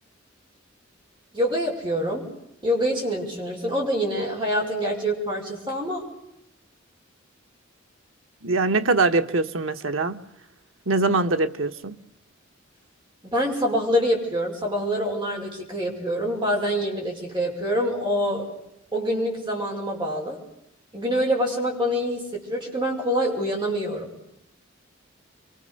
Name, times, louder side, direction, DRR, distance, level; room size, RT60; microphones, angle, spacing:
voice 1, 1.3-2.2 2.6-6.0 13.2-18.5 18.9-20.4 20.9-24.1, equal, 25° right, 6.0 m, -25 dB
voice 2, 8.4-10.2 10.9-11.9, right 3 dB, 85° right, 1.2 m, -23 dB
29.0 x 23.5 x 6.7 m
head